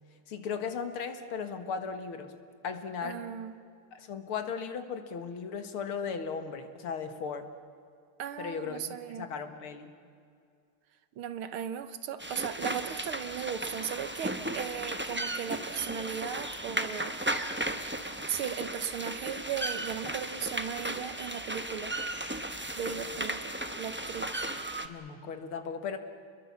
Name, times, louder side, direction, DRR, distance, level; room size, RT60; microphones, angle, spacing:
voice 1, 0.3-2.3 2.6-3.2 3.9-7.5 8.4-9.9 24.8-26.0, left 6 dB, 85° left, 8 dB, 2.4 m, -37 dB
voice 2, 3.0-3.5 8.2-9.3 11.2-17.4 18.3-22.0 22.8-24.3, right 8 dB, 80° right, 12 dB, 1.9 m, -37 dB
sound 1, 12.2-24.9, right 1 dB, 10° right, 0.5 m, -35 dB
29.5 x 21.5 x 7.1 m, 2.3 s
omnidirectional pair, 2.3 m